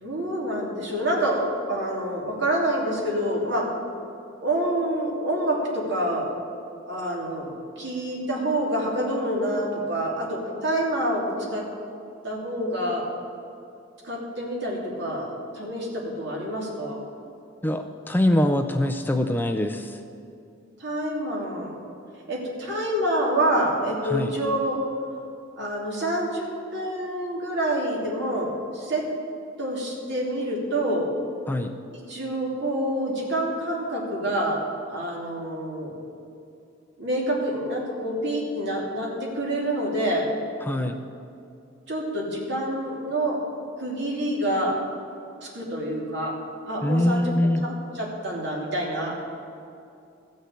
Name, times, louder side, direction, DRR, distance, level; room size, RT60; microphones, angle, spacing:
voice 1, 0.0-3.7 4.4-6.3 6.8-7.5 7.8-11.7 12.2-13.0 14.0-17.0 20.8-21.7 22.3-24.8 25.6-29.1 29.6-31.1 31.9-34.6 34.9-35.9 37.0-40.3 41.9-43.4 43.8-44.8 45.4-46.3 46.7-49.2, right 1 dB, 60° right, -2 dB, 2.9 m, -27 dB
voice 2, 17.6-20.0 24.1-24.3 31.5-31.8 40.7-41.0 46.8-47.6, left 1 dB, 10° left, 6 dB, 0.4 m, -23 dB
14.5 x 6.4 x 8.1 m, 2.6 s
head